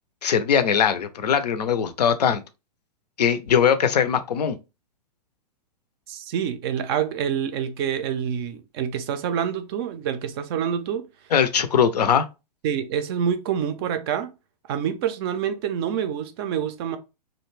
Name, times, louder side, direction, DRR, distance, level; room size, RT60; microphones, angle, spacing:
voice 1, 0.2-2.4 3.2-4.6 11.3-12.2, left 7 dB, 70° left, 0.5 m, -21 dB
voice 2, 6.1-11.1 12.6-14.3 14.7-17.0, right 8 dB, 35° right, 0.4 m, -27 dB
2.4 x 2.2 x 3.1 m
hypercardioid pair, 115°, 21 cm